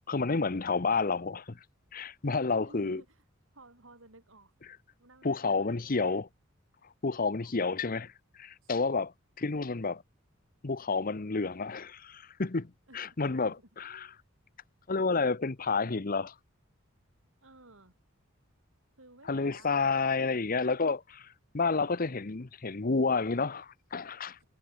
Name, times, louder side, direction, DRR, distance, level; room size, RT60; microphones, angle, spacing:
voice 1, 0.1-1.6 1.9-3.0 5.2-6.3 7.0-10.0 10.6-14.1 14.9-16.3 19.3-24.4, left 4 dB, 45° left, 0.8 m, -30 dB
voice 2, 2.6-3.2 3.5-4.5 5.0-6.1 7.4-7.8 8.6-8.7 12.9-14.2 17.4-17.9 19.0-20.4, right 2 dB, 70° right, 6.7 m, -56 dB
head